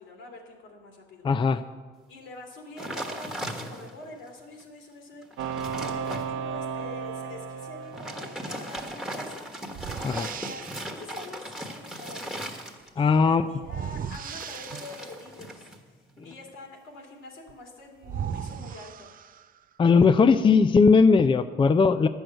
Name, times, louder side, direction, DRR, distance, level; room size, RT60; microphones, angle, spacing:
voice 1, 0.0-1.6 2.1-9.5 10.0-12.6 12.9-19.1, left 2 dB, 85° left, 0 dB, 2.4 m, -45 dB
voice 2, 1.2-1.6 10.0-10.3 13.0-13.4 16.2-16.3 19.8-22.1, left 5 dB, 25° left, 10 dB, 0.4 m, -19 dB
sound 1, 2.8-4.1 4.6-4.7 5.1-6.3 7.8-13.1 14.1-15.8 16.1-16.5, equal, 5° right, 1.4 m, -38 dB
sound 2, 5.4-9.1, right 6 dB, 80° right, 0.8 m, -34 dB
sound 3, 8.8-8.9 9.7-11.0 13.6-15.2 17.5-17.6 18.0-19.6, right 8 dB, 45° right, 0.4 m, -37 dB
10.5 x 6.3 x 7.9 m, 1.4 s
cardioid pair, 90°, 20 cm